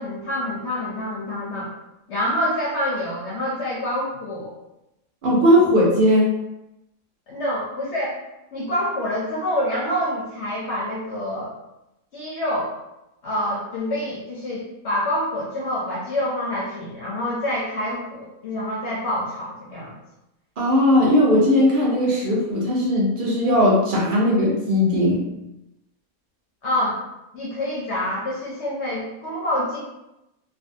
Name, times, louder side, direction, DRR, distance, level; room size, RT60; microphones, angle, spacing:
voice 1, 0.0-1.7 2.1-4.5 7.3-8.2 8.5-11.5 12.1-12.7 13.2-19.9 26.6-27.0 27.3-29.8, left 1 dB, 60° left, -5 dB, 0.7 m, -26 dB
voice 2, 5.2-6.3 20.6-25.2, left 1 dB, 65° right, -4 dB, 0.5 m, -18 dB
2.6 x 2.2 x 2.6 m, 0.92 s
omnidirectional pair, 1.6 m